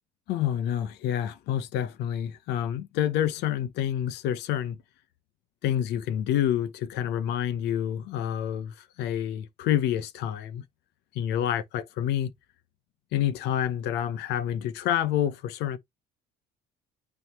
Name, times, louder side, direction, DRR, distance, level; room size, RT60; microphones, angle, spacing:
voice 1, 0.3-4.8 5.6-10.6 11.1-12.3 13.1-15.8, left 10 dB, 85° left, 0.8 m, -28 dB
8.9 x 3.6 x 3.0 m
cardioid pair, 110°, 17 cm